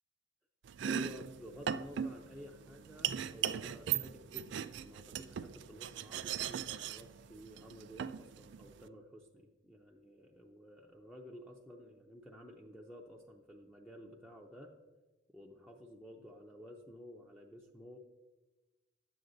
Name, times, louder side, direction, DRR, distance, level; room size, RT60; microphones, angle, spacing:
Domestic sounds home sounds, 0.6-8.9, right 9 dB, 60° right, 0.3 m, -39 dB
voice 1, 0.8-14.7 15.3-18.0, equal, ahead, -2 dB, 0.6 m, -52 dB
10.5 x 7.8 x 3.9 m, 1.2 s
head